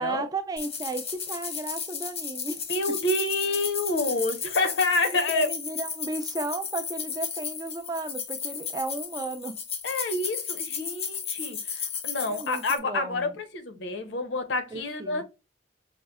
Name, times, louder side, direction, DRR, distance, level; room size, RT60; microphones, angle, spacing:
voice 1, 0.0-3.0 5.0-9.6 12.3-13.3 14.7-15.2, right 2 dB, 20° right, 0.3 m, -34 dB
sound 1, 0.6-12.8, left 7 dB, 35° left, 0.5 m, -34 dB
voice 2, 2.7-5.5 9.8-15.2, left 2 dB, 75° left, 0.6 m, -28 dB
5.0 x 2.0 x 2.3 m
head